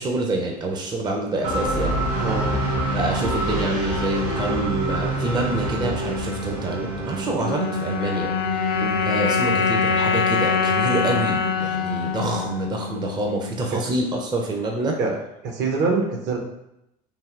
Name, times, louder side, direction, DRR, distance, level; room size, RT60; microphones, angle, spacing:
voice 1, 0.0-2.0 2.9-8.3 8.6-8.8 9.1-15.0, right 2 dB, 20° right, 1 dB, 0.5 m, -26 dB
sound 1, 1.4-13.2, right 1 dB, 80° right, 1.4 m, -28 dB
voice 2, 2.2-2.5 13.7-13.9 15.0-15.1 15.4-16.4, right 4 dB, 60° right, 1 dB, 0.7 m, -24 dB
sound 2, 7.4-13.8, left 6 dB, 55° left, 0.4 m, -24 dB
3.2 x 2.6 x 2.4 m, 0.85 s
hypercardioid pair, 70°, 21 cm